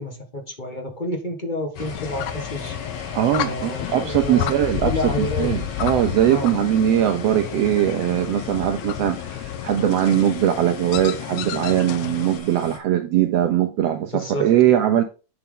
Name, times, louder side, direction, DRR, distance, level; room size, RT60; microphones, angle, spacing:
voice 1, 0.0-2.8 3.3-4.5 4.8-5.5 6.3-6.6 14.0-14.4, left 1 dB, 30° left, 0.9 m, -29 dB
sound 1, 1.7-12.8, left 6 dB, 55° left, 2.5 m, -38 dB
sound 2, 1.9-12.4, left 12 dB, 80° left, 2.0 m, -31 dB
voice 2, 3.1-15.0, right 11 dB, 70° right, 1.7 m, -21 dB
8.9 x 6.0 x 3.8 m
omnidirectional pair, 3.3 m